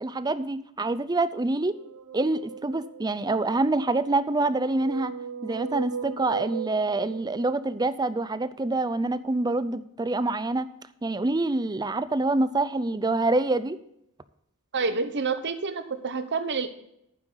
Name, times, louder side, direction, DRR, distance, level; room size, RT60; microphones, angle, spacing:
voice 1, 0.0-1.8 2.1-5.1 5.4-10.7 11.0-13.8, right 2 dB, 20° right, 14 dB, 0.5 m, -26 dB
sound 1, 1.7-3.3 4.1-8.0, right 7 dB, 90° right, 1.0 m, -38 dB
voice 2, 14.7-16.7, right 4 dB, 50° right, 9 dB, 1.0 m, -28 dB
11.0 x 9.5 x 4.0 m, 0.76 s
head